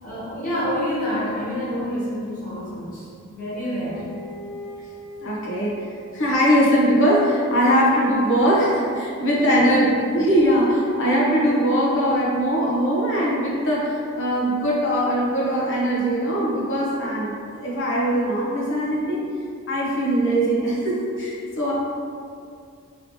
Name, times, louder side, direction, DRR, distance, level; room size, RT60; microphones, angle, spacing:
voice 1, 0.0-4.0 9.2-9.8, left 1 dB, 40° left, -11 dB, 1.4 m, -27 dB
sound 1, 3.9-6.5 7.7-11.0, left 1 dB, 85° right, 0.7 m, -42 dB
voice 2, 5.2-5.8 6.1-9.9 10.1-19.3 19.7-21.7, equal, 55° left, -5 dB, 0.8 m, -21 dB
3.0 x 2.8 x 3.1 m, 2.3 s
head